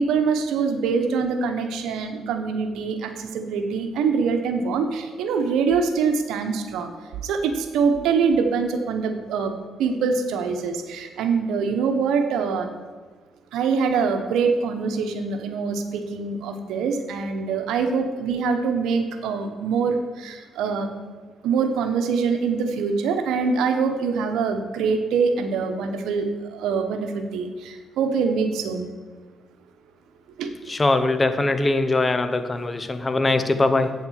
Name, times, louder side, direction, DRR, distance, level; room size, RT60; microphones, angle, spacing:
voice 1, 0.0-6.9 7.2-9.5 9.8-12.7 13.5-20.9 21.4-28.9 30.4-30.7, right 5 dB, 85° right, 6 dB, 1.1 m, -24 dB
voice 2, 30.7-33.9, left 2 dB, 25° left, 10 dB, 0.9 m, -21 dB
8.7 x 7.1 x 6.5 m, 1.5 s
cardioid pair, 90°, 0 cm